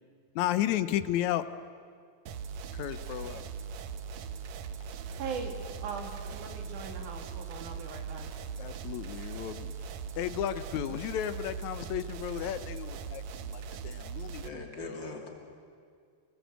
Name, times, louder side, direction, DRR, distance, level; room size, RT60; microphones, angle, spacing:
voice 1, 0.4-1.5 2.7-3.5 8.6-9.7 10.2-15.0, left 12 dB, 75° left, 13 dB, 2.1 m, -33 dB
sound 1, 2.3-14.5, right 6 dB, 70° right, 2.2 m, -40 dB
voice 2, 5.2-5.6 5.8-8.2, right 5 dB, 90° right, 4 dB, 3.8 m, -40 dB
voice 3, 14.4-15.3, left 2 dB, 40° left, 1 dB, 3.4 m, -41 dB
29.0 x 21.5 x 8.1 m, 2.3 s
omnidirectional pair, 3.4 m